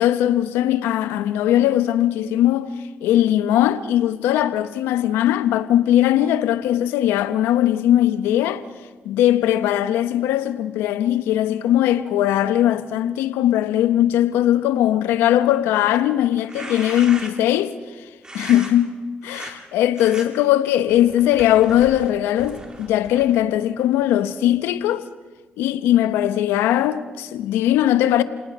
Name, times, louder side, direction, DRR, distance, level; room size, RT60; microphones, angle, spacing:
voice 1, 0.0-2.7 3.0-8.6 9.0-17.7 18.5-18.9 19.2-25.1 25.6-28.2, left 12 dB, 85° left, 1.0 m, -19 dB
sound 1, 16.3-17.5 18.2-18.7 19.2-19.5 19.9-20.3 20.9-23.5, right 2 dB, 20° right, 4.0 m, -37 dB
28.0 x 19.0 x 6.1 m
cardioid pair, 75°, 4 cm